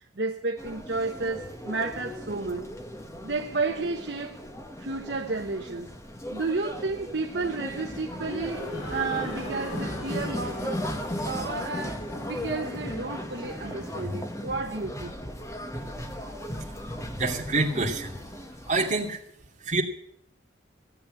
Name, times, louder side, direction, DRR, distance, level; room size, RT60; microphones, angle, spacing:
voice 1, 0.0-2.7 3.2-4.4 4.8-5.9 6.3-10.9 11.2-15.2, right 3 dB, 60° right, 1.0 m, -32 dB
sound 1, 0.6-19.1, equal, 15° left, 1.3 m, -36 dB
sound 2, 8.4-14.3, equal, 90° left, 4.6 m, -41 dB
voice 2, 17.1-18.2 18.7-19.2 19.6-19.8, right 3 dB, 35° right, 2.7 m, -26 dB
16.5 x 8.5 x 8.7 m
head